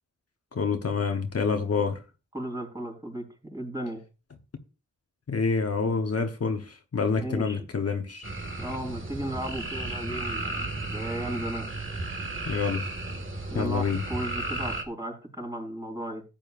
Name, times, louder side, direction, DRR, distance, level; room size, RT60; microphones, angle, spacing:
voice 1, 0.5-2.0 5.3-8.3 12.5-12.9 13.5-14.0, left 5 dB, 50° left, 1.1 m, -27 dB
voice 2, 2.3-3.2 3.5-4.0 7.2-7.6 8.6-11.7 13.5-16.2, right 1 dB, 10° right, 4.3 m, -35 dB
sound 1, 8.2-14.8, right 2 dB, 40° right, 1.9 m, -34 dB
14.0 x 8.9 x 2.5 m
cardioid pair, 65°, 30 cm